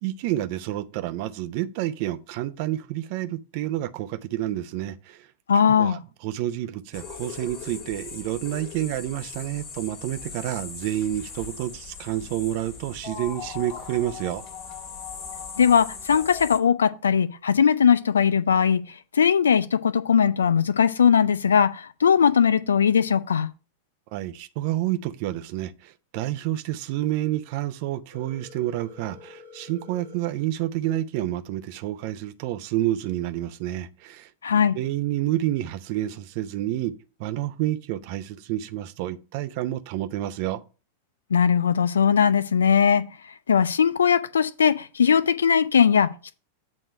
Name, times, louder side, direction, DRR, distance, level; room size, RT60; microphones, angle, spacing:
voice 1, 0.0-5.3 5.7-14.4 24.1-34.3 34.7-40.6, right 14 dB, 45° right, 0.6 m, -29 dB
voice 2, 5.5-6.0 15.6-18.8 19.1-23.5 34.4-34.8 41.3-43.0 43.5-46.4, left 7 dB, 70° left, 0.5 m, -20 dB
sound 1, 6.9-16.6, left 6 dB, 40° left, 1.6 m, -39 dB
Telephone, 28.1-30.1, left 4 dB, 80° right, 1.5 m, -47 dB
8.4 x 3.2 x 6.4 m
figure-of-eight pair, 90°, 0 cm